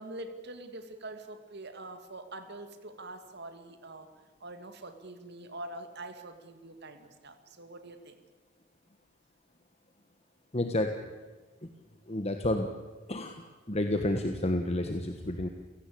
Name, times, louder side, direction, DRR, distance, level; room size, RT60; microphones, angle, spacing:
voice 1, 0.0-4.1 4.4-8.2, right 2 dB, 55° right, 8 dB, 2.3 m, -44 dB
voice 2, 10.5-11.0 11.6-11.7 12.1-12.7 13.1-15.5, left 1 dB, 30° left, 6 dB, 1.4 m, -30 dB
29.5 x 17.0 x 8.6 m, 1.3 s
head